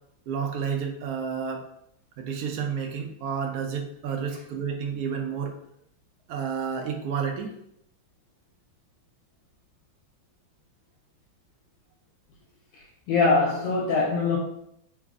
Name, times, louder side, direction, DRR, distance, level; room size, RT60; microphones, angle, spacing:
voice 1, 0.3-1.7 2.2-5.5 6.3-7.5, right 6 dB, 75° right, 2 dB, 0.9 m, -30 dB
voice 2, 12.7-14.4, left 3 dB, 80° left, -2 dB, 1.3 m, -23 dB
3.3 x 2.0 x 3.5 m, 0.75 s
omnidirectional pair, 2.1 m